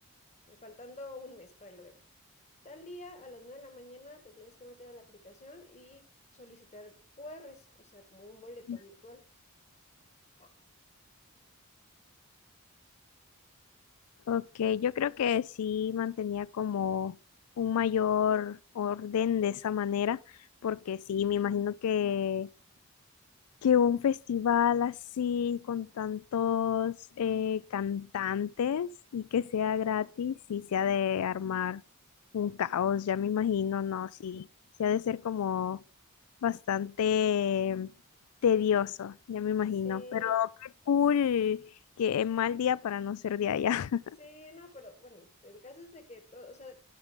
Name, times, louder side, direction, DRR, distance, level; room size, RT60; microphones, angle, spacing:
voice 1, 0.5-2.0 2.6-6.1 6.3-9.3 10.4-10.5 39.8-40.4 44.2-46.9, left 2 dB, 30° left, 1.5 m, -49 dB
voice 2, 14.3-17.2 17.6-20.2 20.6-22.5 23.6-31.8 32.3-34.5 34.8-35.8 36.4-37.9 38.4-40.5 40.9-41.6 42.0-44.0, left 8 dB, 80° left, 0.4 m, -29 dB
12.0 x 5.2 x 5.0 m
head